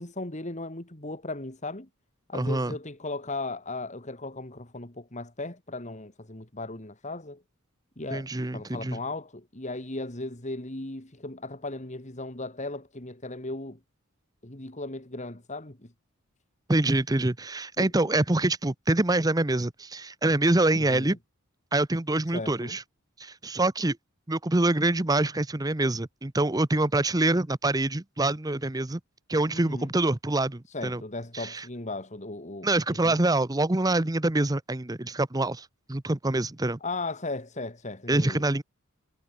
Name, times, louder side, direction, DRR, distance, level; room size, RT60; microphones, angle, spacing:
voice 1, 0.0-1.9 2.3-7.4 8.0-13.8 14.4-15.9 17.8-17.9 20.7-21.2 22.3-22.8 29.5-29.9 30.7-33.2 36.8-38.4, left 2 dB, 35° left, 2.3 m, -37 dB
voice 2, 2.3-2.7 8.1-9.0 16.7-21.2 21.7-22.8 23.2-24.0 24.3-29.0 29.3-31.0 31.3-31.6 32.6-36.8 38.1-38.6, right 2 dB, 15° right, 0.8 m, -25 dB
head